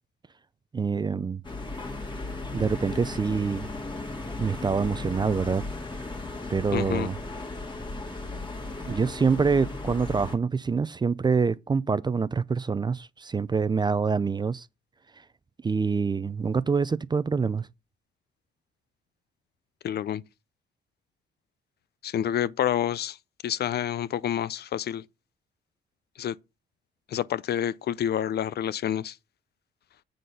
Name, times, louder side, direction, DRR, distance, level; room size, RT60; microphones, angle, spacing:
voice 1, 0.7-1.4 2.5-3.7 4.4-5.6 6.5-7.2 8.9-14.7 15.6-17.7, right 5 dB, 20° right, 0.4 m, -26 dB
sound 1, 1.4-10.4, left 2 dB, 25° left, 1.8 m, -36 dB
voice 2, 6.7-7.1 19.8-20.2 22.0-23.2 23.4-25.0 26.2-26.3 27.1-29.2, left 10 dB, 55° left, 0.5 m, -28 dB
7.6 x 3.9 x 6.6 m
cardioid pair, 90°, 20 cm